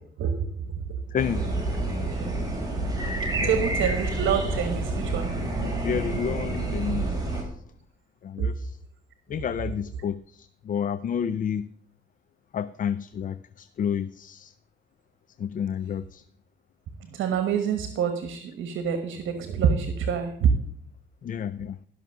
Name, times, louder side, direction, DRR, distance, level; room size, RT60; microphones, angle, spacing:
voice 1, 0.2-1.0 1.7-1.8 2.1-2.3 3.4-5.3 8.4-8.5 9.3-9.5 17.0-20.5, right 7 dB, 75° right, 8 dB, 1.2 m, -27 dB
voice 2, 1.1-1.4 3.4-3.5 5.6-7.2 8.2-8.8 9.3-11.7 12.5-14.5 15.4-16.2 21.2-21.8, left 8 dB, 45° left, 15 dB, 0.5 m, -30 dB
sound 1, 1.2-7.4, right 2 dB, 20° right, 3.9 m, -28 dB
13.0 x 6.1 x 6.3 m, 0.65 s
cardioid pair, 90°, 20 cm